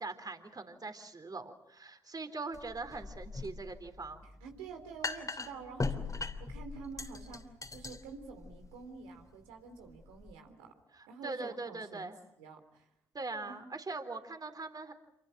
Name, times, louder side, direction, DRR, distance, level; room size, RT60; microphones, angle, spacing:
voice 1, 0.0-4.3 10.9-12.2 13.1-14.9, right 3 dB, 35° right, 8 dB, 3.9 m, -41 dB
sound 1, 2.5-10.3, left 3 dB, 30° left, 3.0 m, -41 dB
voice 2, 4.4-10.7 11.1-12.1 12.4-12.9 13.5-13.6, right 5 dB, 80° right, 5 dB, 3.4 m, -48 dB
28.0 x 24.5 x 6.2 m, 0.82 s
hypercardioid pair, 40°, 12 cm